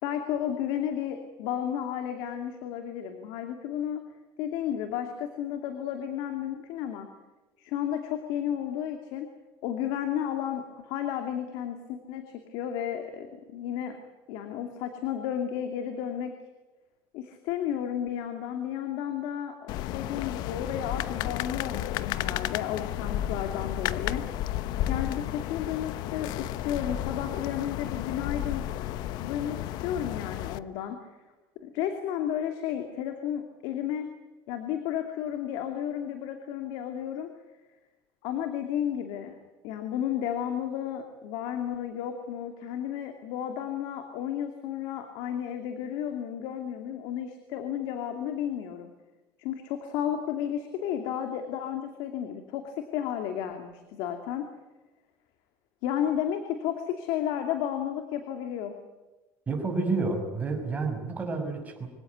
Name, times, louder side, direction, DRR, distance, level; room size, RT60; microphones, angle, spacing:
voice 1, 0.0-4.0 4.4-7.1 7.6-9.3 9.6-14.0 14.3-16.3 17.1-24.6 24.9-28.6 29.2-31.0 31.6-34.1 34.5-37.3 38.2-39.4 39.6-48.9 49.4-54.5 55.8-58.8, left 10 dB, 80° left, 5 dB, 2.6 m, -32 dB
sound 1, 19.7-30.6, left 12 dB, 65° left, 0.9 m, -32 dB
voice 2, 59.5-61.9, right 3 dB, 20° right, 3 dB, 5.7 m, -29 dB
25.5 x 17.0 x 9.4 m, 1.1 s
cardioid pair, 145°, 8 cm